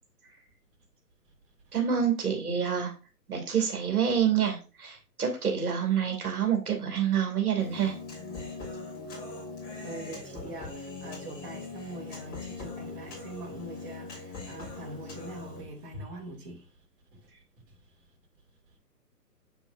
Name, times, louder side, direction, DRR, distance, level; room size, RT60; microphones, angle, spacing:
voice 1, 1.7-2.9 3.3-8.0, right 8 dB, 60° right, 2.7 m, -27 dB
Human voice, 7.6-15.6, left 3 dB, 20° left, 3.2 m, -41 dB
voice 2, 9.8-16.6, right 1 dB, 35° right, 2.4 m, -43 dB
7.3 x 7.0 x 2.6 m
hypercardioid pair, 145°, 49 cm